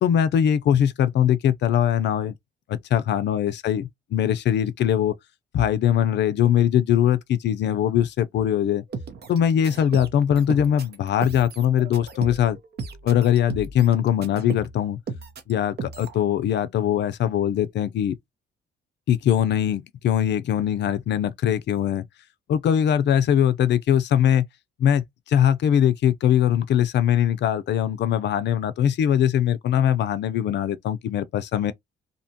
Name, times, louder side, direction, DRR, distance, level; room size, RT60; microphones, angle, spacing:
voice 1, 0.0-2.3 2.7-5.1 5.5-8.8 9.3-12.6 13.0-15.0 15.5-18.2 19.1-22.1 22.5-24.5 24.8-31.7, left 9 dB, 60° left, 0.4 m, -21 dB
sound 1, 8.9-14.8 15.1-15.5 15.8-16.2, right 4 dB, 55° right, 0.7 m, -35 dB
2.7 x 2.2 x 2.7 m
cardioid pair, 90°, 20 cm